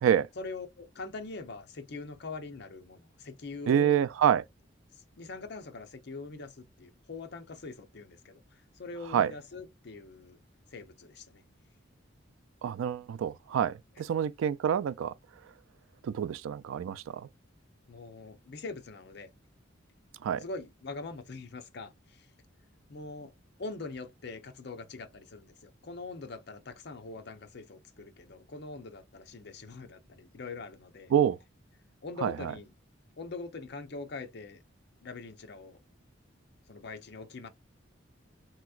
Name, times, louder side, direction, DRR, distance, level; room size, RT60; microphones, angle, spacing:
voice 1, 0.4-4.0 5.2-10.4 10.7-11.4 17.9-19.3 20.4-22.3 22.9-23.3 23.6-31.1 32.0-32.7 33.2-34.6 35.0-35.8 36.7-37.5, left 3 dB, 55° left, 0.6 m, -43 dB
voice 2, 3.7-4.4 9.1-9.3 12.6-15.1 16.0-17.3 20.2-20.4 31.1-31.4 32.2-32.5, right 9 dB, 85° right, 0.3 m, -27 dB
3.4 x 2.9 x 2.3 m
head